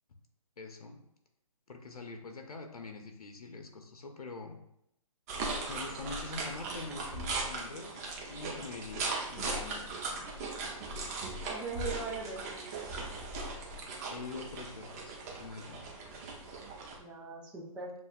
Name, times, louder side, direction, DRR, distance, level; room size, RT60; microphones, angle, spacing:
voice 1, 0.6-1.0 1.7-4.6 5.7-10.3 14.1-15.9, left 4 dB, 85° left, 5 dB, 0.7 m, -45 dB
sound 1, 5.3-17.0, right 3 dB, 25° right, 0.7 m, -38 dB
voice 2, 11.4-12.6 17.0-17.9, right 4 dB, 5° right, -3 dB, 0.3 m, -40 dB
7.2 x 2.5 x 2.4 m, 0.78 s
hypercardioid pair, 150°, 19 cm